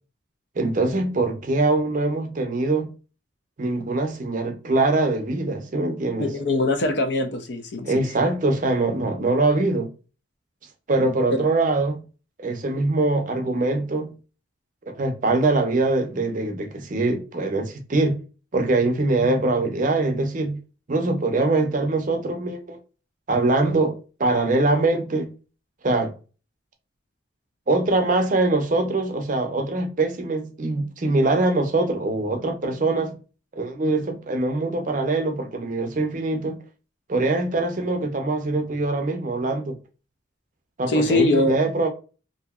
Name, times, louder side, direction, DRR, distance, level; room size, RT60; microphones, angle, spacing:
voice 1, 0.6-2.9 3.6-6.3 7.8-9.9 10.9-12.0 12.4-14.1 14.9-18.2 18.5-20.6 20.9-22.8 23.3-25.3 25.8-26.1 27.7-33.2 33.6-36.6 37.1-39.8 40.8-41.9, right 2 dB, 40° right, 0.5 m, -23 dB
voice 2, 6.2-8.0 40.9-41.6, left 2 dB, 60° left, 0.5 m, -22 dB
2.8 x 2.6 x 2.3 m
head